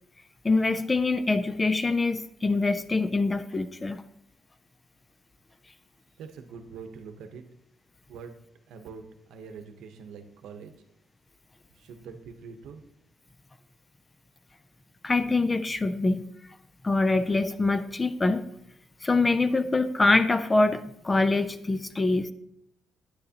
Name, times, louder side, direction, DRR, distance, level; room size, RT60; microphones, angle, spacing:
voice 1, 0.4-4.0 15.0-16.3 16.8-18.5 19.0-22.3, left 3 dB, 15° left, 12 dB, 0.3 m, -24 dB
voice 2, 6.2-7.4 8.1-8.4 8.7-10.7 11.7-12.8, right 5 dB, 85° right, 6 dB, 0.9 m, -44 dB
9.6 x 9.4 x 2.8 m, 0.79 s
cardioid pair, 165°, 0 cm